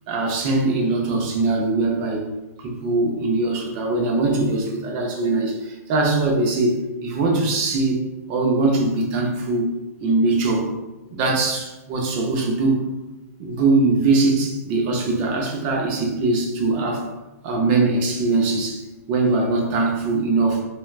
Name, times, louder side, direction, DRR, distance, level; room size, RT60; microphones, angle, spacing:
voice 1, 0.1-2.3 2.6-8.0 8.3-9.7 10.0-10.7 11.1-12.8 13.4-17.1 17.4-20.6, right 3 dB, 35° right, 0 dB, 0.7 m, -21 dB
3.3 x 2.9 x 2.4 m, 1.0 s
hypercardioid pair, 145°, 9 cm